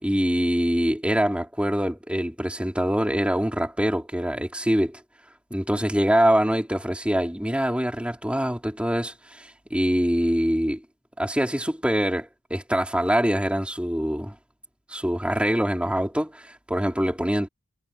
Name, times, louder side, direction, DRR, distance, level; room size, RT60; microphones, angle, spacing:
voice 1, 0.0-5.0 5.5-10.8 11.2-14.4 14.9-17.5, equal, 5° right, 4.0 m, -24 dB
head